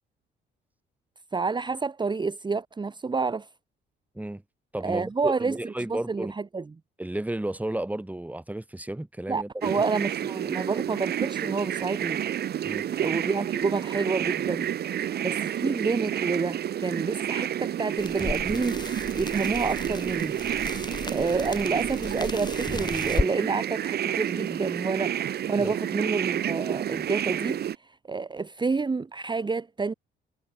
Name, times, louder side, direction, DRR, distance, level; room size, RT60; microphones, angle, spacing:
voice 1, 1.3-3.5 4.8-6.6 9.3-12.2 13.0-20.4 21.1-29.9, right 4 dB, 25° right, 1.1 m, -29 dB
voice 2, 4.7-6.3 7.0-9.5 12.6-12.9 25.6-25.7, right 1 dB, 5° right, 2.0 m, -32 dB
sound 1, 9.6-27.7, right 10 dB, 55° right, 0.7 m, -30 dB
sound 2, 18.0-23.3, left 3 dB, 20° left, 7.1 m, -34 dB
cardioid pair, 90°, 20 cm